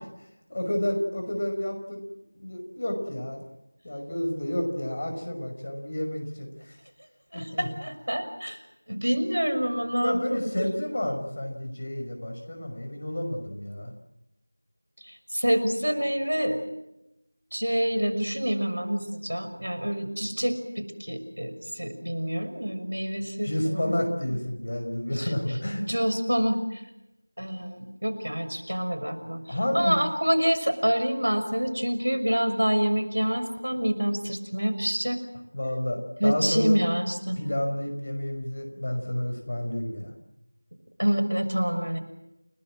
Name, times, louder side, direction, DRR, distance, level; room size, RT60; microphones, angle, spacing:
voice 1, 0.5-2.0 2.3-3.4 3.8-6.8 7.3-7.7 10.0-13.9 23.4-25.8 29.5-30.0 35.5-36.8 37.4-40.1, left 1 dB, 35° left, 3 dB, 5.5 m, -30 dB
voice 2, 7.3-8.6 8.9-10.4 15.0-16.6 17.5-23.9 24.3-24.4 25.1-25.3 25.8-26.8 27.4-35.2 36.2-37.4 41.0-42.0, equal, 90° right, 9 dB, 6.1 m, -27 dB
30.0 x 19.5 x 7.6 m, 0.89 s
figure-of-eight pair, 175°, 0 cm